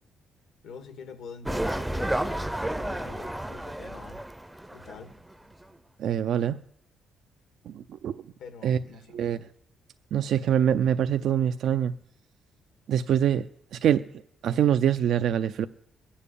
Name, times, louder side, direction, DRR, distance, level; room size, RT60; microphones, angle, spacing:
voice 1, 0.6-4.2 4.7-5.1 8.4-9.2, left 6 dB, 85° left, 2.0 m, -45 dB
sound 1, 1.5-5.3 5.6-5.7, right 1 dB, 5° right, 0.6 m, -31 dB
voice 2, 6.0-6.6 7.7-8.2 8.6-8.8 9.1-9.4 10.1-11.9 12.9-14.0 14.4-15.7, right 9 dB, 70° right, 0.5 m, -24 dB
20.5 x 7.1 x 8.5 m
cardioid pair, 90°, 0 cm